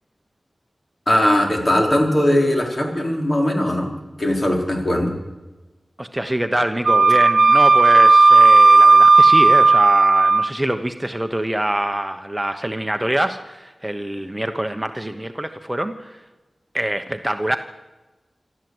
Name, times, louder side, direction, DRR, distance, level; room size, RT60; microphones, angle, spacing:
voice 1, 1.1-3.9 4.2-5.1, left 1 dB, 45° left, 1 dB, 4.6 m, -19 dB
voice 2, 6.0-16.2 16.7-17.6, right 1 dB, 15° right, 6 dB, 1.1 m, -25 dB
Wind instrument woodwind instrument, 6.9-10.5, right 3 dB, 60° right, 0.7 m, -12 dB
26.0 x 13.5 x 8.0 m, 1.1 s
wide cardioid pair, 65°, 0 cm